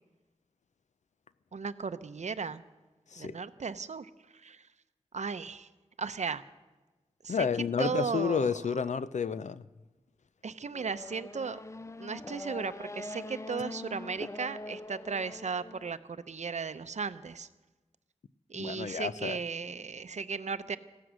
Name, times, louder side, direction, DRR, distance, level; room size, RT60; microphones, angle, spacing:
voice 1, 1.5-2.6 3.2-4.1 4.4-4.6 5.1-5.7 6.0-6.4 7.2-7.5 7.8-8.5 10.4-11.6 12.0-17.5 18.5-20.8, right 5 dB, 80° right, 0.6 m, -36 dB
voice 2, 7.3-9.6 18.6-19.4, left 6 dB, 85° left, 0.5 m, -31 dB
Race car auto racing / Accelerating revving vroom, 10.7-15.9, left 2 dB, 25° left, 0.4 m, -43 dB
16.0 x 14.0 x 6.3 m
wide cardioid pair, 70°, 12 cm